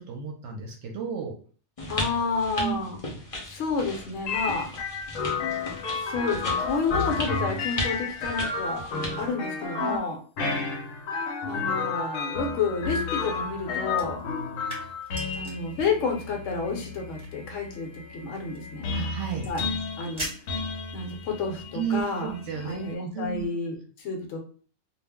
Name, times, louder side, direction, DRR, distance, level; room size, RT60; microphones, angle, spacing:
voice 1, 0.0-1.3 2.6-2.8 9.8-10.0 18.9-19.4 21.7-22.8 23.1-23.5, right 7 dB, 70° right, 1 dB, 0.8 m, -32 dB
sound 1, 1.8-9.3, left 1 dB, 40° left, 0.6 m, -36 dB
voice 2, 1.9-3.0 3.4-4.7 5.9-8.8 9.2-10.2 11.5-14.2 15.3-18.9 19.4-19.7 20.0-20.3 20.9-22.3 22.6-24.4, left 4 dB, 70° left, 2 dB, 1.0 m, -30 dB
sound 2, 4.3-22.9, left 4 dB, 90° left, 1.0 m, -32 dB
sound 3, 13.9-21.3, right 1 dB, 25° right, 1.0 m, -44 dB
2.4 x 2.0 x 3.4 m, 0.42 s
omnidirectional pair, 1.3 m